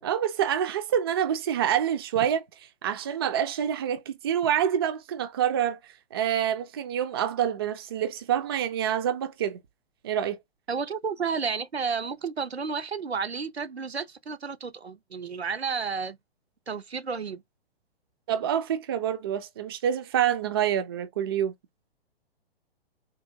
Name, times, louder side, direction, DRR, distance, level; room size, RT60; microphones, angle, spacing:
voice 1, 0.0-2.4 2.8-5.8 6.1-9.6 10.0-10.4 18.3-21.5, right 9 dB, 25° right, 0.4 m, -27 dB
voice 2, 10.7-16.2 16.7-17.4, right 5 dB, 85° right, 0.6 m, -31 dB
3.9 x 2.8 x 2.6 m
figure-of-eight pair, 120°, 31 cm